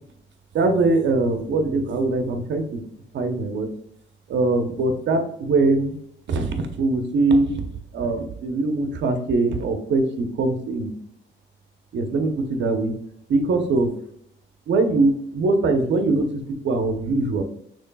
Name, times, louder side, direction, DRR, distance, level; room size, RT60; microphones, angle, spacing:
voice 1, 0.5-2.8 3.1-3.7 4.3-5.9 6.3-7.7 7.9-10.9 11.9-12.9 13.3-13.9 14.7-17.4, right 3 dB, 65° right, 6 dB, 0.8 m, -22 dB
6.6 x 3.2 x 2.3 m, 0.71 s
cardioid pair, 90°, 20 cm